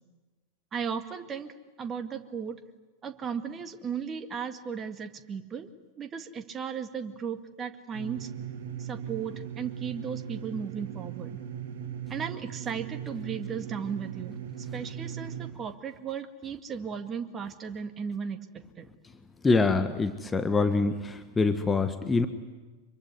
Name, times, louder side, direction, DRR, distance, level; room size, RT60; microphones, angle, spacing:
voice 1, 0.7-1.5 1.8-2.6 3.0-5.7 6.0-8.3 8.8-11.4 12.1-14.4 14.7-18.4 18.8-18.9, right 6 dB, 25° right, 9 dB, 2.0 m, -36 dB
sound 1, 7.9-15.5, right 9 dB, 50° right, 2.9 m, -39 dB
voice 2, 19.4-22.3, left 3 dB, 15° left, 10 dB, 1.6 m, -25 dB
25.5 x 23.5 x 9.7 m, 1.2 s
figure-of-eight pair, 90°, 0 cm